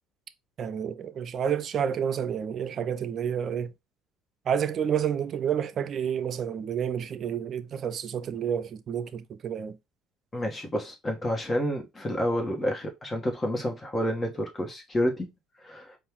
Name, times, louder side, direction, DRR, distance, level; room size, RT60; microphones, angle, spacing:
voice 1, 0.6-3.7 4.5-9.8, right 8 dB, 50° right, 0.5 m, -29 dB
voice 2, 10.3-15.3 15.6-16.0, equal, 25° left, 1.4 m, -29 dB
4.4 x 2.6 x 3.5 m
supercardioid pair, 75°, 0 cm